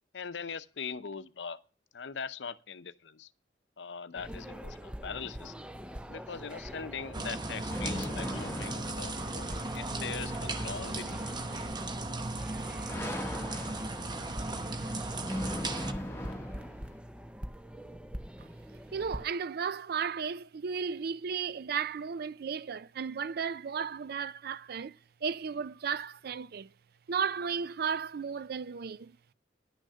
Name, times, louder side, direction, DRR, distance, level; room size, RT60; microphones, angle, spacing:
voice 1, 0.1-1.6 1.9-3.3 3.8-5.5 6.1-11.4, left 6 dB, 75° left, 0.7 m, -41 dB
sound 1, 4.2-19.2, equal, 5° right, 0.5 m, -44 dB
sound 2, 6.6-17.0, left 1 dB, 15° left, 1.2 m, -41 dB
sound 3, 7.1-15.9, right 2 dB, 25° right, 0.9 m, -36 dB
voice 2, 18.9-24.9 25.2-26.7 27.1-29.2, right 6 dB, 60° right, 0.4 m, -34 dB
11.0 x 6.3 x 6.7 m
head